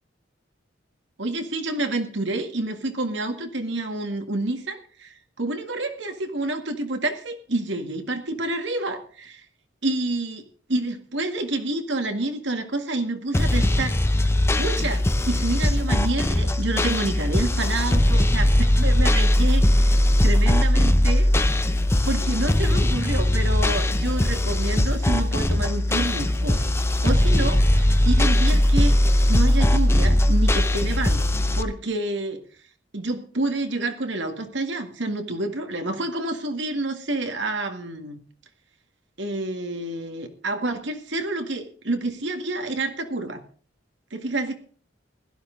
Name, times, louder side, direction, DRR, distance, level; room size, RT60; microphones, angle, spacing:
voice 1, 1.2-9.4 9.8-14.0 14.6-20.0 20.2-21.3 22.1-26.6 27.0-28.9 29.3-31.3 31.5-32.4 32.9-38.2 39.2-43.4 44.1-44.5, right 2 dB, 70° right, 6 dB, 1.9 m, -28 dB
sound 1, 13.3-31.6, left 1 dB, 15° left, 0.7 m, -20 dB
16.0 x 12.5 x 3.9 m, 0.43 s
head